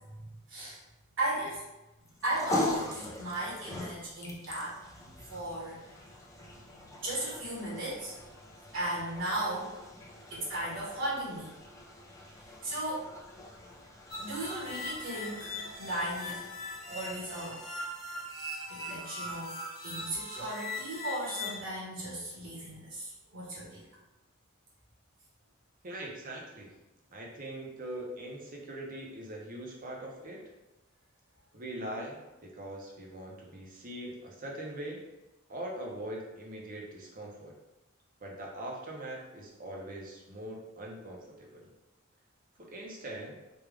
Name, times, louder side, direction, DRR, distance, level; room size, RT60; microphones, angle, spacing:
voice 1, 0.2-0.8 1.2-1.6 2.2-4.9 5.3-5.7 7.0-8.1 8.7-9.7 10.3-11.5 12.6-13.1 14.2-16.4 16.9-17.6 18.7-19.5 19.8-23.8, right 1 dB, 65° right, -6 dB, 1.2 m, -36 dB
sound 1, 2.0-18.5, left 1 dB, 15° left, 0.5 m, -41 dB
sound 2, 14.1-21.6, left 1 dB, 40° left, 1.3 m, -40 dB
voice 2, 25.8-26.7 27.1-30.4 31.5-35.0 35.5-37.5 38.2-41.7 42.6-43.3, right 1 dB, 40° right, -1 dB, 0.7 m, -42 dB
3.4 x 2.3 x 3.3 m, 1.0 s
head